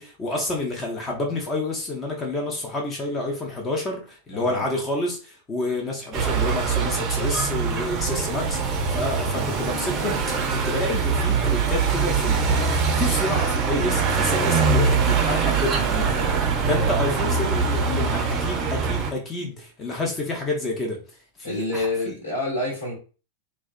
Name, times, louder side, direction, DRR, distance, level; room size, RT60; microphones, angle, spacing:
voice 1, 0.0-21.0 21.4-21.9, left 2 dB, 20° left, 1 dB, 0.6 m, -29 dB
sound 1, 6.1-19.1, right 5 dB, 35° right, 0.5 m, -23 dB
voice 2, 21.4-22.9, left 2 dB, 80° left, -4 dB, 1.1 m, -27 dB
2.3 x 2.1 x 2.5 m, 0.35 s
figure-of-eight pair, 90°, 0 cm